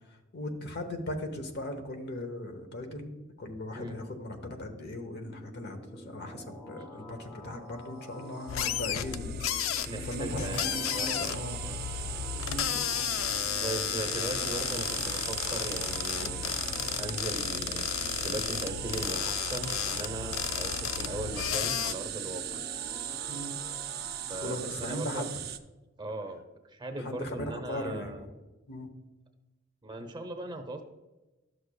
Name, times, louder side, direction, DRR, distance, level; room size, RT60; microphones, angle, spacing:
voice 1, 0.1-3.1 3.4-11.6 12.5-12.8 16.2-16.3 23.3-23.6 24.4-25.3 27.0-28.3 28.7-28.9, left 1 dB, 55° left, 6 dB, 1.0 m, -38 dB
sound 1, 4.9-24.9, left 1 dB, 20° left, 0.9 m, -48 dB
sound 2, 8.3-25.6, right 10 dB, 50° right, 0.5 m, -39 dB
sound 3, 8.5-21.9, left 10 dB, 75° left, 0.4 m, -33 dB
voice 2, 9.8-11.3 11.6-11.8 13.6-16.5 17.0-17.9 18.2-22.6 24.3-25.2 26.0-28.2 29.8-30.8, right 1 dB, 20° right, 5 dB, 0.7 m, -38 dB
12.0 x 6.6 x 2.2 m, 1.1 s
head